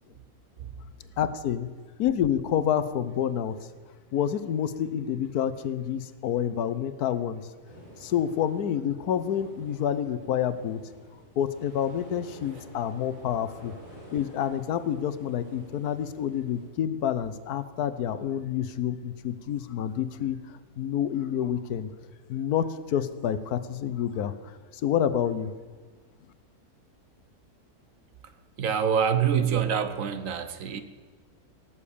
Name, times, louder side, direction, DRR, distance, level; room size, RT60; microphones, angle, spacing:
voice 1, 1.2-1.7 2.0-3.6 4.1-7.5 8.0-10.8 11.4-13.7 14.1-20.4 20.8-21.9 22.3-24.3 24.8-25.5, left 9 dB, 85° left, 14 dB, 1.3 m, -28 dB
sound 1, 7.6-16.7, equal, 85° right, 6.0 m, -50 dB
voice 2, 28.6-30.8, right 7 dB, 65° right, 11 dB, 1.3 m, -25 dB
17.0 x 7.2 x 8.5 m, 1.4 s
omnidirectional pair, 1.6 m